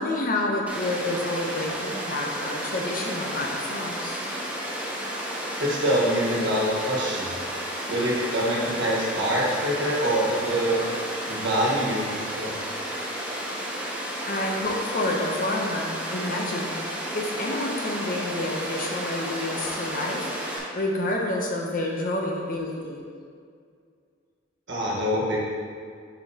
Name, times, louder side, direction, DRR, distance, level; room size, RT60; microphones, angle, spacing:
voice 1, 0.0-4.2 14.3-16.7 17.1-20.4 20.7-23.0, left 1 dB, 45° left, 0 dB, 0.7 m, -29 dB
Water, 0.7-20.6, equal, 10° right, 0.8 m, -32 dB
voice 2, 5.6-7.3 7.9-10.8 11.3-12.6 24.7-25.4, equal, 65° right, -5 dB, 1.4 m, -25 dB
6.8 x 5.0 x 2.8 m, 2.2 s
head